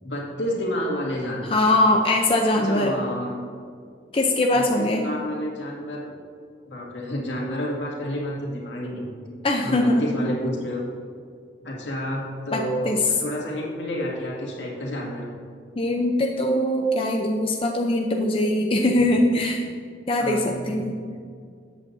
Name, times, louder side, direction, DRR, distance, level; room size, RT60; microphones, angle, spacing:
voice 1, 0.0-1.6 2.6-3.4 4.5-6.1 6.7-10.8 11.6-15.4 20.2-20.9, equal, 85° left, -3 dB, 2.2 m, -30 dB
voice 2, 1.5-2.9 4.1-5.0 9.4-10.0 12.5-13.0 15.8-19.6 20.1-20.9, left 1 dB, 30° left, 1 dB, 0.6 m, -21 dB
13.5 x 8.1 x 2.7 m, 2.2 s
head